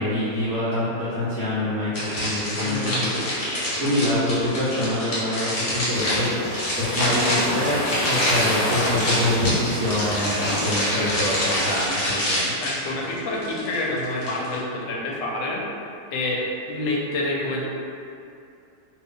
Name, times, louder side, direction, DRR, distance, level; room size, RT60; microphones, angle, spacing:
voice 1, 0.0-3.3 3.8-7.8 8.1-12.5, left 1 dB, 70° right, -11 dB, 0.6 m, -25 dB
sound 1, 1.9-14.6, equal, 50° left, 1.1 m, -26 dB
voice 2, 2.6-3.1 12.1-12.2 12.6-15.6 16.1-17.6, left 2 dB, 85° left, -2 dB, 1.2 m, -28 dB
sound 2, 5.9-11.9, left 1 dB, 65° left, 0.7 m, -30 dB
2.7 x 2.6 x 3.5 m, 2.6 s
omnidirectional pair, 1.9 m